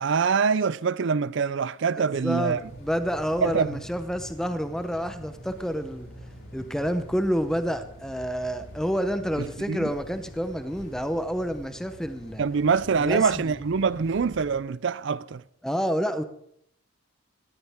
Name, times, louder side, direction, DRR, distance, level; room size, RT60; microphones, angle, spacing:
voice 1, 0.0-2.6 3.4-3.8 9.4-9.9 12.4-15.4, right 5 dB, 60° right, 0.4 m, -25 dB
voice 2, 2.0-6.1 6.5-12.4 13.0-13.5 15.6-16.2, equal, 5° left, 0.7 m, -29 dB
sound 1, 2.5-14.6, equal, 90° left, 5.2 m, -45 dB
18.5 x 14.0 x 3.6 m
head